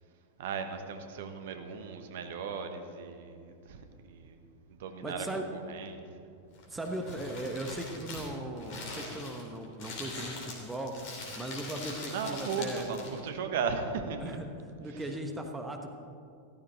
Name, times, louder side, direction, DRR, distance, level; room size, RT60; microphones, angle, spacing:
voice 1, 0.4-4.4 4.7-5.3 5.5-6.0 12.1-14.4, right 5 dB, 55° right, 7 dB, 1.2 m, -36 dB
voice 2, 5.0-5.5 6.7-10.9 11.4-13.0 14.2-14.5 14.8-15.9, right 1 dB, 10° right, 3 dB, 1.1 m, -38 dB
Crumpling crinkling, 6.5-13.3, left 2 dB, 45° left, 3.2 m, -42 dB
14.0 x 13.5 x 4.1 m, 2.4 s
figure-of-eight pair, 90°, 0 cm